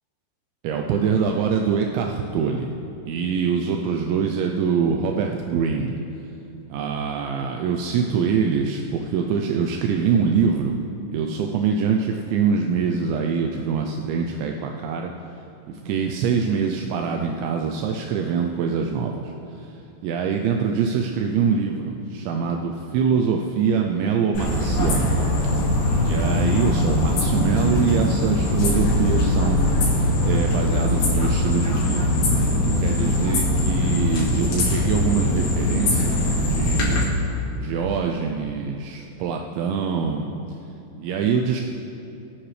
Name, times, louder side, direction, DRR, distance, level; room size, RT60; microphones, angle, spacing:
voice 1, 0.6-2.7 3.1-6.0 6.7-10.8 11.1-15.1 15.7-19.1 19.6-19.7 20.0-25.2 26.0-29.6 30.2-32.1 32.5-37.0 37.6-40.3 41.0-41.6, right 6 dB, 80° right, 2 dB, 2.8 m, -24 dB
sound 1, 24.3-37.0, left 1 dB, 60° left, 3.8 m, -21 dB
22.5 x 8.8 x 3.3 m, 2.7 s
omnidirectional pair, 5.3 m